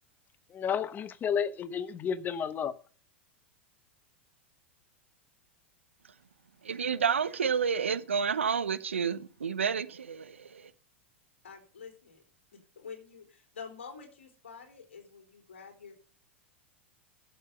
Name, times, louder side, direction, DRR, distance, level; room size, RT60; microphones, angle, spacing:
voice 1, 0.5-2.7, left 7 dB, 30° left, 0.9 m, -31 dB
voice 2, 6.6-10.7, right 6 dB, 80° right, 0.9 m, -30 dB
voice 3, 11.4-12.2 12.8-16.0, left 6 dB, 75° left, 3.5 m, -47 dB
11.0 x 7.6 x 5.2 m
figure-of-eight pair, 90°, 7 cm